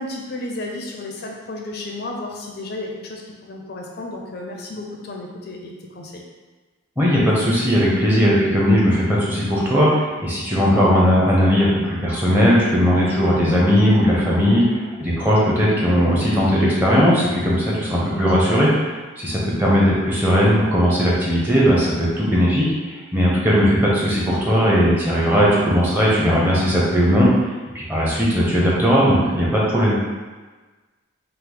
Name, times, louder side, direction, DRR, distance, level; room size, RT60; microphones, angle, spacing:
voice 1, 0.0-6.2 14.6-14.7, left 2 dB, 50° left, 0 dB, 0.5 m, -33 dB
voice 2, 7.0-14.6 15.0-27.3 27.7-30.0, equal, 10° right, -6 dB, 0.8 m, -18 dB
5.7 x 2.0 x 3.5 m, 1.3 s
head